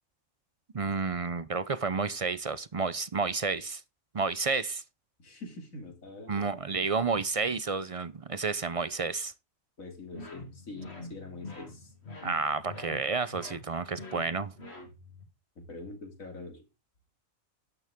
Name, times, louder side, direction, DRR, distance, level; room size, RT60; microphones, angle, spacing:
voice 1, 0.7-3.8 4.1-4.8 6.3-9.3 12.2-14.5, right 4 dB, 45° right, 0.4 m, -30 dB
voice 2, 5.2-6.5 9.8-11.9 15.6-16.6, left 2 dB, 75° left, 3.3 m, -44 dB
sound 1, 10.1-15.3, left 2 dB, 50° left, 2.8 m, -45 dB
12.0 x 9.4 x 3.6 m
omnidirectional pair, 1.4 m